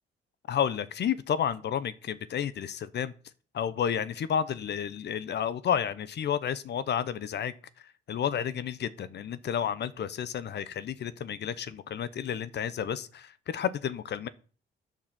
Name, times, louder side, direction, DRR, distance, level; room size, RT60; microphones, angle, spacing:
voice 1, 0.5-3.1 3.5-7.5 8.1-14.3, left 8 dB, 60° left, 16 dB, 0.9 m, -31 dB
9.0 x 6.5 x 7.6 m, 0.39 s
cardioid pair, 90°, 20 cm